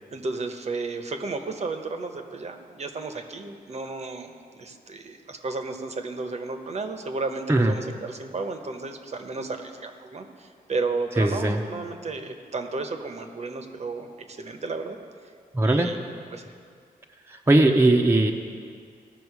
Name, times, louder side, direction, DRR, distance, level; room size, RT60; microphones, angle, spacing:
voice 1, 0.1-15.0 15.6-16.0 16.3-16.4, right 3 dB, 45° right, 5 dB, 0.9 m, -33 dB
voice 2, 11.2-11.6 15.5-15.9 17.3-18.3, right 2 dB, 15° right, 2 dB, 0.7 m, -19 dB
17.0 x 6.1 x 4.8 m, 2.2 s
cardioid pair, 95°, 16 cm